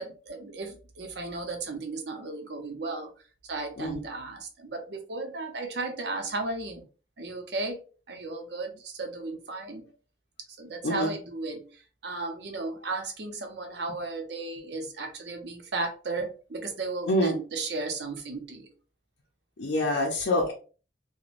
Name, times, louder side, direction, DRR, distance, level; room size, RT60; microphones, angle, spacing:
voice 1, 0.0-3.1 3.5-6.8 7.2-7.8 8.1-9.9 10.6-11.7 12.0-18.7, right 3 dB, 65° right, 4 dB, 0.7 m, -35 dB
voice 2, 19.6-20.5, left 1 dB, 75° left, -1 dB, 0.5 m, -26 dB
2.5 x 2.1 x 3.0 m, 0.36 s
head